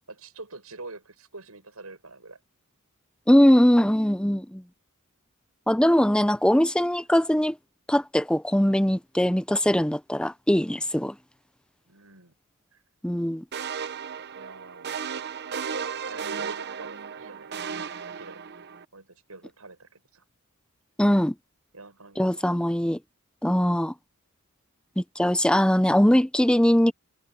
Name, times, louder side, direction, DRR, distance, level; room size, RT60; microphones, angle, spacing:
voice 1, 0.1-2.4 6.5-6.6 11.9-12.3 12.7-12.8 14.3-15.0 16.1-18.5 18.9-20.2 21.7-22.7, right 3 dB, 90° right, 7.2 m, -45 dB
voice 2, 3.3-4.6 5.7-7.6 7.9-11.2 13.0-13.4 21.0-21.4 22.2-23.0 23.4-23.9 25.0-26.9, equal, 5° left, 0.6 m, -21 dB
sound 1, 13.5-18.8, right 6 dB, 50° right, 0.8 m, -35 dB
head